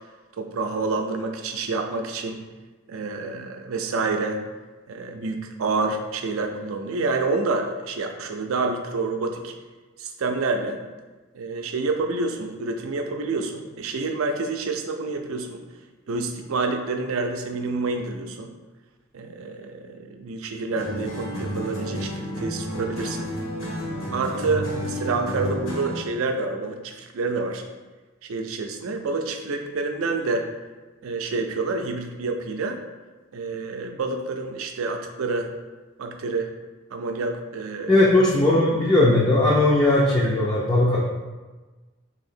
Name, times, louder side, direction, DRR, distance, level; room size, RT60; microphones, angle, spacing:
voice 1, 0.4-2.5 2.9-4.5 4.9-9.5 10.0-10.8 11.3-15.6 16.1-18.5 19.1-23.3 24.1-27.6 28.2-30.5 31.0-32.8 33.3-35.5 36.0-36.5 36.9-38.0 39.0-39.1 40.2-40.3, right 3 dB, 85° right, 5 dB, 0.4 m, -28 dB
sound 1, 20.8-26.1, equal, 75° left, 1.0 m, -31 dB
voice 2, 37.9-41.0, left 2 dB, 20° left, -6 dB, 0.4 m, -18 dB
2.8 x 2.8 x 4.2 m, 1.2 s
head